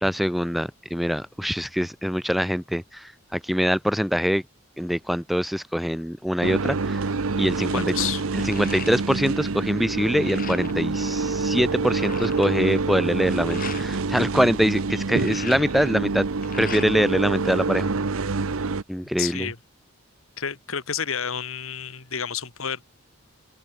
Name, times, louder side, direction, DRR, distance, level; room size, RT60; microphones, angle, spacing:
voice 1, 0.0-4.4 4.8-7.1 7.4-7.9 8.3-16.3 16.6-17.9 18.9-19.5, equal, ahead, 0.6 m, -24 dB
sound 1, 6.4-18.8, right 3 dB, 75° right, 0.8 m, -26 dB
sound 2, 7.2-7.3 7.6-9.4 9.7-10.9 11.4-11.5 11.7-13.9 14.9-17.2 17.5-18.4, left 7 dB, 40° left, 2.9 m, -40 dB
voice 2, 7.7-8.2 19.2-19.6 20.4-22.8, left 8 dB, 70° left, 1.9 m, -30 dB
open air
head